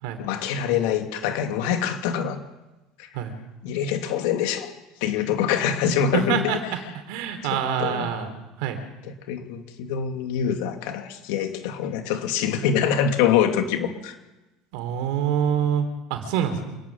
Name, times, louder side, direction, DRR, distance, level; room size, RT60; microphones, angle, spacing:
voice 1, 0.2-2.4 3.0-3.1 3.6-4.7 5.0-6.5 7.5-8.1 9.3-14.2, left 8 dB, 75° left, 5 dB, 2.8 m, -25 dB
voice 2, 6.1-6.6 7.1-8.3 8.6-8.8 14.7-16.8, right 8 dB, 75° right, 7 dB, 3.9 m, -26 dB
26.5 x 11.0 x 9.6 m, 1.1 s
supercardioid pair, 125°, 0 cm